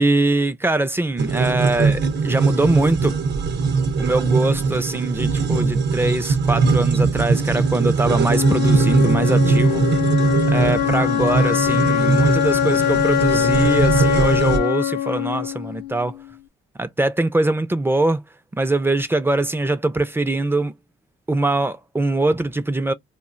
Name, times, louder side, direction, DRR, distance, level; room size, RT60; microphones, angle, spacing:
voice 1, 0.0-3.2 4.0-10.2 10.5-16.2 16.8-18.2 18.5-20.7 21.3-22.9, right 2 dB, 10° right, 0.4 m, -22 dB
sound 1, 1.2-14.6, right 4 dB, 60° right, 0.7 m, -20 dB
Wind instrument woodwind instrument, 8.3-16.3, left 11 dB, 55° left, 0.5 m, -22 dB
2.4 x 2.1 x 3.6 m
cardioid pair, 90°, 20 cm